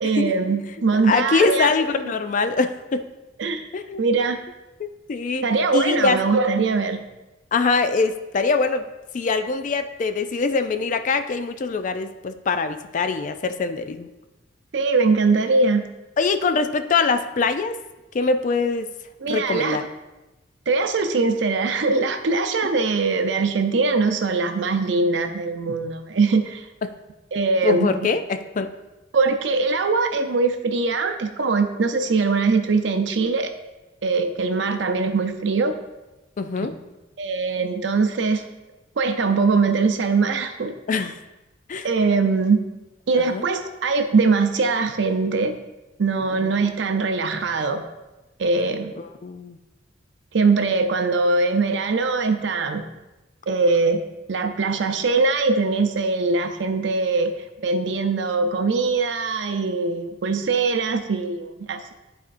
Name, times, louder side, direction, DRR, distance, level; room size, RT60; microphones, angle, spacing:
voice 1, 0.0-1.7 3.4-3.7 4.0-4.4 5.4-7.0 14.7-15.9 19.2-19.8 20.7-26.7 27.3-28.1 29.1-33.5 34.0-35.8 37.2-38.4 39.0-40.7 41.8-42.6 43.1-45.6 46.0-47.8 48.4-48.9 50.3-52.9 53.5-61.9, right 4 dB, 65° right, 7 dB, 0.5 m, -22 dB
voice 2, 1.0-3.1 3.7-4.0 4.8-5.4 5.7-6.2 7.5-8.9 9.1-14.1 16.2-17.8 18.1-18.9 19.3-19.8 26.8-26.9 27.6-28.7 36.4-36.7 40.9-41.2 41.7-41.9 43.3-43.4 46.4-46.5 49.0-49.6, left 4 dB, 40° left, 9 dB, 0.3 m, -23 dB
10.5 x 4.2 x 2.5 m, 1.1 s
head